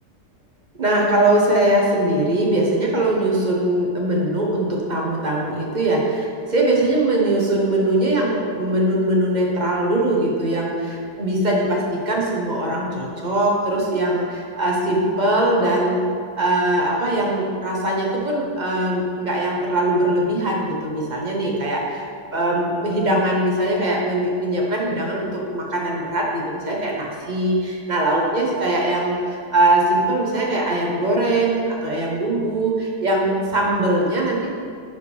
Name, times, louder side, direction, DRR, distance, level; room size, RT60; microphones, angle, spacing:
voice 1, 0.8-16.0 16.4-22.0 22.3-34.5, right 1 dB, 35° right, -2 dB, 0.8 m, -21 dB
10.5 x 4.9 x 3.4 m, 2.2 s
omnidirectional pair, 1.8 m